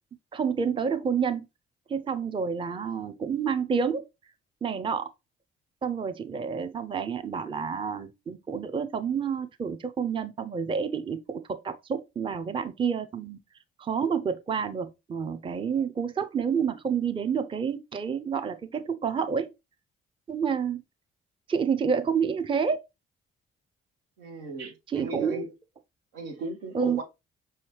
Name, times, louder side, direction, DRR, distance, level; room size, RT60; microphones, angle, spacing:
voice 1, 0.3-1.5 1.9-4.0 4.6-5.1 5.8-11.2 11.5-13.4 13.8-19.5 20.3-20.8 21.5-22.8 24.9-25.4 26.7-27.0, right 6 dB, 20° right, 0.5 m, -29 dB
voice 2, 24.2-25.5 26.1-27.0, right 3 dB, 75° right, 0.8 m, -36 dB
5.5 x 2.8 x 3.1 m
figure-of-eight pair, 40°, 29 cm